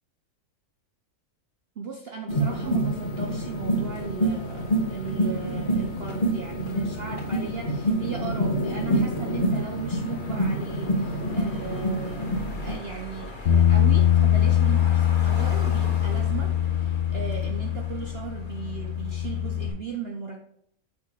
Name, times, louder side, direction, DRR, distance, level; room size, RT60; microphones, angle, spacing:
voice 1, 1.8-12.3 12.6-20.5, right 6 dB, 55° right, 2 dB, 0.7 m, -37 dB
sound 1, 2.3-12.8, right 1 dB, 30° left, 1.2 m, -27 dB
sound 2, 2.6-19.7, left 2 dB, 75° left, 2.0 m, -42 dB
Bass guitar, 13.5-19.7, left 10 dB, 55° left, 1.0 m, -22 dB
6.9 x 6.1 x 3.1 m, 0.70 s
omnidirectional pair, 1.6 m